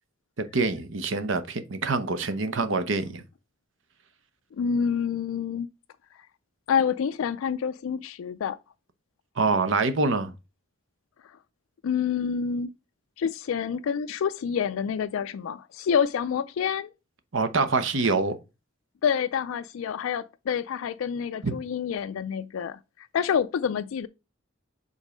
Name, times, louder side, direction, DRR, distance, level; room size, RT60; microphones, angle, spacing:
voice 1, 0.5-3.2 9.4-10.3 17.3-18.4 21.4-21.5, right 3 dB, 65° right, 0.8 m, -25 dB
voice 2, 4.6-5.7 6.7-8.6 11.8-12.7 13.2-16.9 19.0-24.1, left 7 dB, 80° left, 0.3 m, -27 dB
5.3 x 4.0 x 5.0 m
head